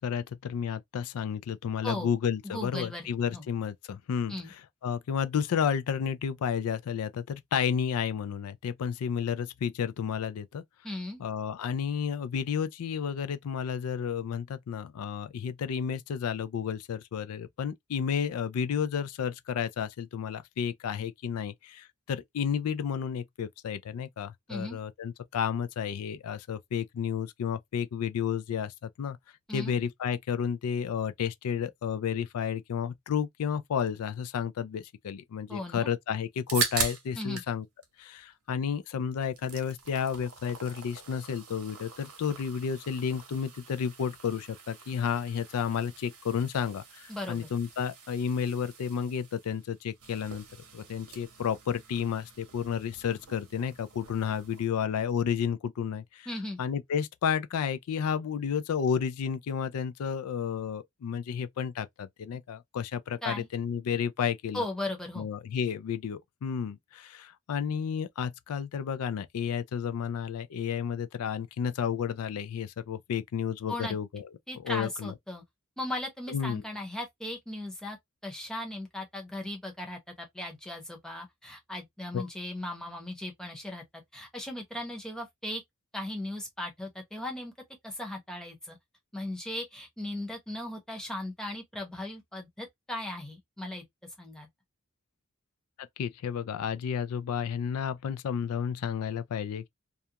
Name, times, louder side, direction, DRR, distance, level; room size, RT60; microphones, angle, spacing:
voice 1, 0.0-4.3 4.8-10.6 11.2-29.2 29.5-37.7 38.0-50.4 50.7-56.3 56.6-64.6 65.2-74.3 74.6-75.1 76.3-76.6 82.1-82.3 95.8-99.7, left 7 dB, 80° left, 0.4 m, -31 dB
voice 2, 2.4-3.5 4.3-4.5 10.8-11.2 24.5-24.8 29.5-29.8 35.5-35.9 37.2-37.4 47.1-47.5 56.3-56.6 63.2-63.5 64.5-65.3 73.7-73.9 74.5-75.4 75.8-78.0 78.2-85.6 85.9-87.5 87.8-88.8 89.1-93.8 94.2-94.5, left 1 dB, 5° left, 0.8 m, -37 dB
sound 1, 36.2-37.5 37.8-38.8 39.2-54.7, right 6 dB, 75° right, 0.8 m, -41 dB
2.4 x 2.2 x 2.7 m
head